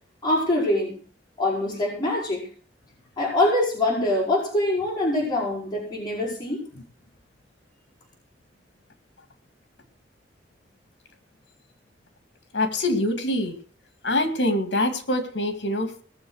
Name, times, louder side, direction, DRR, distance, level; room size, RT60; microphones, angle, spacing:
voice 1, 0.2-0.9 1.4-2.4 3.2-6.6, left 1 dB, 25° left, -5 dB, 5.3 m, -24 dB
voice 2, 12.5-13.6 14.0-16.0, left 1 dB, 70° left, 8 dB, 2.2 m, -24 dB
18.5 x 7.2 x 6.4 m, 0.43 s
head